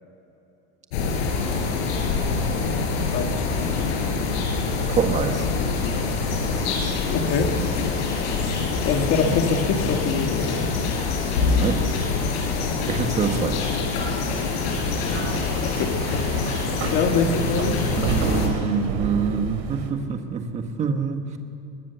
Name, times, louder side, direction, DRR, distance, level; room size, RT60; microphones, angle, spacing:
sound 1, 0.9-18.5, left 4 dB, 90° left, 5.6 m, -25 dB
voice 1, 3.1-3.6 7.1-7.5 8.8-10.6 15.6-16.4 16.9-17.8, left 5 dB, 45° left, 4 dB, 1.8 m, -24 dB
voice 2, 4.9-5.5 11.5-11.8 12.9-13.6 18.0-21.2, right 6 dB, 25° right, 5 dB, 1.5 m, -25 dB
sound 2, 14.7-19.9, right 5 dB, 85° right, 3.3 m, -30 dB
23.5 x 20.5 x 7.0 m, 2.8 s
cardioid pair, 175°, 30 cm